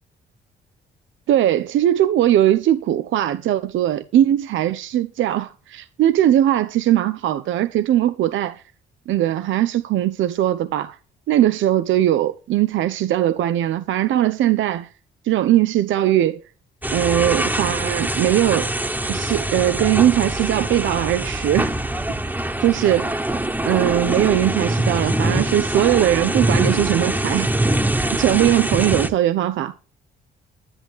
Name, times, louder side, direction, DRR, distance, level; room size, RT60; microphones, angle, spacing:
voice 1, 1.3-8.6 9.1-11.0 11.3-14.9 15.2-16.4 16.9-18.7 19.1-21.7 22.6-23.2 23.6-27.5 28.1-29.7, right 12 dB, 75° right, 0.8 m, -20 dB
sound 1, 16.8-29.1, right 1 dB, 10° right, 1.3 m, -23 dB
11.0 x 10.0 x 3.7 m
cardioid pair, 90°, 20 cm